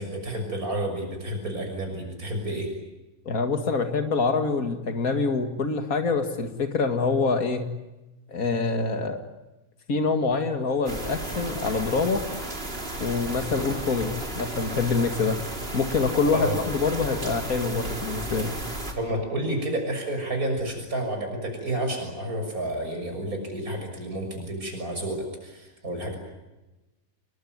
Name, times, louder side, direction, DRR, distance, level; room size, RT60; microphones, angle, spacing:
voice 1, 0.0-2.7 16.3-16.6 19.0-26.2, right 1 dB, 85° right, 3 dB, 6.9 m, -30 dB
voice 2, 3.3-7.6 8.3-9.3 9.9-12.2 13.0-15.4 15.7-18.6, left 4 dB, 80° left, 6 dB, 2.6 m, -25 dB
sound 1, 10.9-18.9, right 1 dB, 40° right, 4.1 m, -34 dB
28.5 x 21.5 x 9.5 m, 1.0 s
omnidirectional pair, 1.5 m